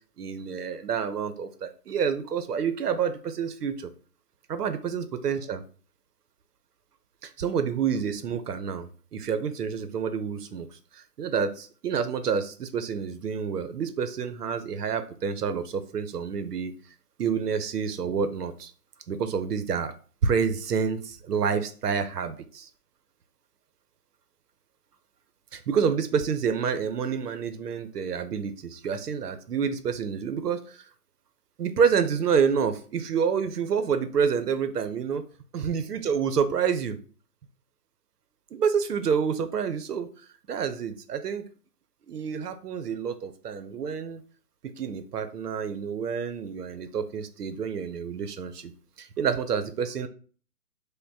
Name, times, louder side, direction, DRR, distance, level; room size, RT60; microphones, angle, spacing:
voice 1, 0.2-3.9 4.5-5.6 7.2-16.7 17.2-18.7 19.1-19.9 20.2-22.7 25.5-30.8 31.6-35.2 35.5-37.0 38.5-40.1 40.5-41.4 42.1-44.2 44.6-48.7 49.0-50.1, right 6 dB, 75° right, 10 dB, 0.7 m, -28 dB
5.1 x 2.1 x 2.6 m, 0.41 s
hypercardioid pair, 165°, 47 cm